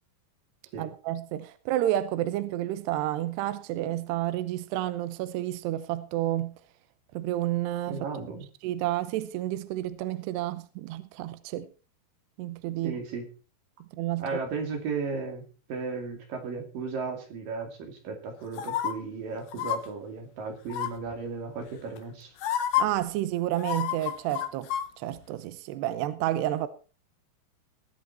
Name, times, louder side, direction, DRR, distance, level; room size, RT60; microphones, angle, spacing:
voice 1, 0.8-6.6 7.1-8.1 8.6-11.7 12.4-13.0 13.9-14.3 22.8-24.7 25.0-26.7, right 14 dB, 75° right, 2.7 m, -30 dB
voice 2, 7.9-8.4 12.8-13.3 14.2-22.3, right 4 dB, 55° right, 3.8 m, -35 dB
sound 1, 18.6-18.9 19.5-19.8 20.7-21.1 22.0-22.1 22.4-22.8 23.6-24.9 25.2-25.3, left 11 dB, 65° left, 2.1 m, -28 dB
19.0 x 8.2 x 4.3 m
omnidirectional pair, 5.3 m